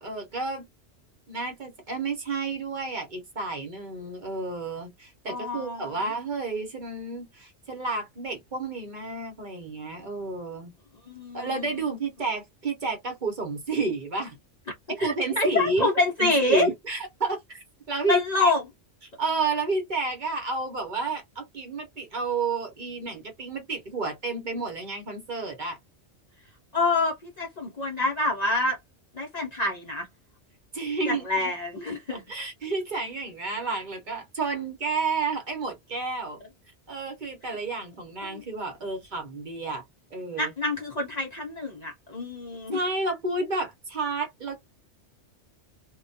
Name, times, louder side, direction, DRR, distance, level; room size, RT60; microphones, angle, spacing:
voice 1, 0.0-0.6 1.3-10.7 11.3-14.4 14.9-15.9 16.2-17.6 17.9-18.5 19.0-25.8 30.7-31.5 32.1-36.4 36.9-39.8 40.1-40.5 42.7-44.6, right 3 dB, 45° right, 0.8 m, -31 dB
voice 2, 5.3-5.9 11.1-11.5 15.0-16.7 18.1-18.6 26.7-28.8 29.2-30.1 31.1-32.2 38.2-38.4 40.4-42.8, left 2 dB, 45° left, 0.6 m, -26 dB
2.2 x 2.2 x 2.5 m
omnidirectional pair, 1.2 m